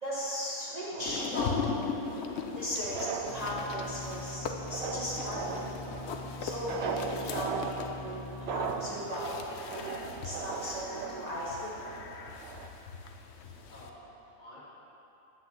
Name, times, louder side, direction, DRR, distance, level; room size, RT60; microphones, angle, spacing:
voice 1, 0.0-1.7 2.5-5.7 6.4-10.0 10.2-11.8, equal, 25° right, -9 dB, 1.6 m, -37 dB
sound 1, 0.9-12.7, right 5 dB, 65° right, 0.6 m, -39 dB
sound 2, 1.1-13.9, left 5 dB, 55° left, 0.8 m, -40 dB
Organ, 1.8-12.0, left 3 dB, 75° left, 0.4 m, -45 dB
voice 2, 13.5-14.6, equal, 30° left, -9 dB, 2.5 m, -51 dB
9.9 x 6.1 x 7.4 m, 2.9 s
omnidirectional pair, 1.7 m